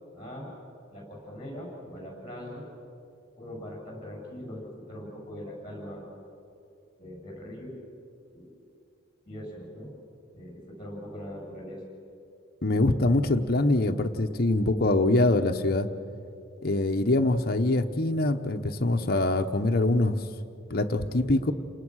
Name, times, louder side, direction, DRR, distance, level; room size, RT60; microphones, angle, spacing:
voice 1, 0.1-0.5 0.9-2.7 3.4-6.1 7.0-7.8 8.3-8.5 9.3-9.9 10.3-11.8, equal, 25° left, -1 dB, 7.9 m, -41 dB
voice 2, 12.6-15.9 16.6-20.3 20.7-21.5, left 2 dB, 50° left, 6 dB, 1.0 m, -24 dB
29.0 x 20.0 x 6.4 m, 2.6 s
head